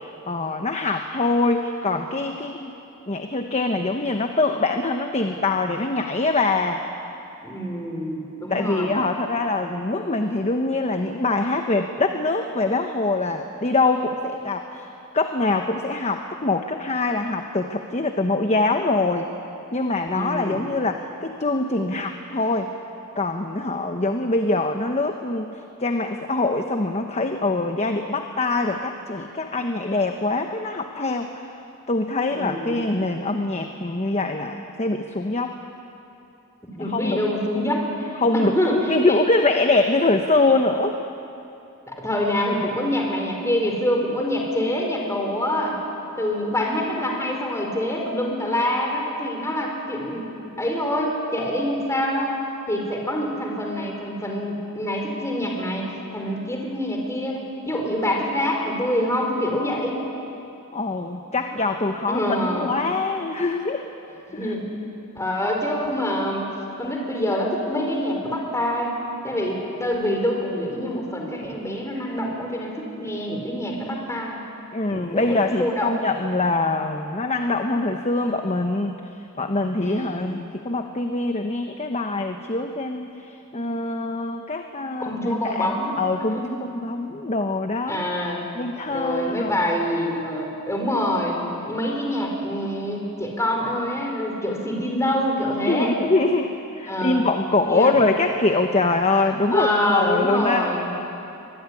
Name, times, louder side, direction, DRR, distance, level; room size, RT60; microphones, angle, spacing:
voice 1, 0.0-2.7 3.1-6.8 8.5-14.9 15.1-19.3 19.7-22.7 23.2-25.5 25.8-31.3 31.9-35.6 36.8-37.3 38.2-41.0 60.7-63.9 64.3-64.5 74.7-79.0 79.4-88.0 88.5-89.5 95.6-100.7, left 2 dB, 30° left, 5 dB, 1.1 m, -24 dB
voice 2, 7.4-8.9 20.1-20.7 32.3-32.8 36.7-39.2 41.9-45.8 46.2-50.3 50.6-52.4 52.7-55.8 56.1-60.0 62.1-62.8 64.3-64.7 65.1-66.4 66.8-68.9 69.2-74.4 74.9-75.9 79.8-80.2 85.0-86.0 86.3-86.6 87.9-88.4 88.9-95.9 96.9-97.2 97.7-98.0 99.5-100.9, left 1 dB, 15° left, 0 dB, 4.4 m, -25 dB
24.5 x 21.5 x 9.9 m, 2.9 s
head